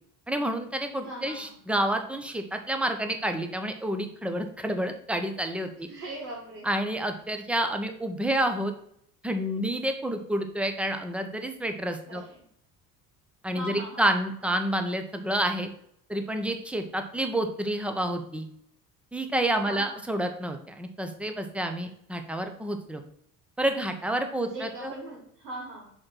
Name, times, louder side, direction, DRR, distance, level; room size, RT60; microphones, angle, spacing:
voice 1, 0.3-5.9 6.6-8.7 9.2-12.2 13.4-15.7 16.1-18.5 19.1-23.0 23.6-24.9, right 1 dB, 5° right, 6 dB, 0.6 m, -29 dB
voice 2, 1.0-1.6 5.9-6.7 12.1-12.4 13.5-14.0 19.6-20.1 24.4-25.9, right 1 dB, 75° right, -2 dB, 1.3 m, -40 dB
6.4 x 3.0 x 5.6 m, 0.68 s
figure-of-eight pair, 60°, 49 cm